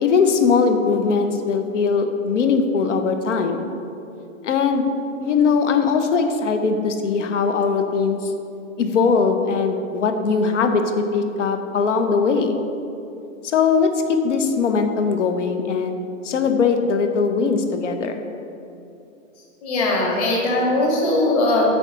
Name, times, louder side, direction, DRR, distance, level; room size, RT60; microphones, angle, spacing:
voice 1, 0.0-3.7 4.4-4.9 5.2-8.3 8.8-12.6 13.4-18.2, left 5 dB, 65° left, 6 dB, 0.9 m, -20 dB
voice 2, 19.6-21.7, left 2 dB, 30° left, -2 dB, 1.5 m, -20 dB
8.9 x 3.7 x 6.9 m, 2.7 s
hypercardioid pair, 170°, 39 cm